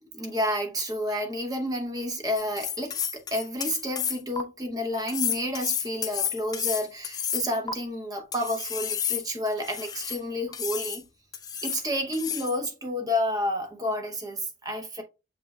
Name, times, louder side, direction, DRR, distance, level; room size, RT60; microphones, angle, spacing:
voice 1, 0.1-11.0 11.6-15.0, equal, 20° right, 0.7 m, -30 dB
sound 1, 2.4-4.4 5.1-7.7 8.3-10.2 10.5-11.0 11.3-11.8 12.1-12.6, left 8 dB, 20° left, 0.3 m, -31 dB
6.7 x 3.1 x 2.3 m
head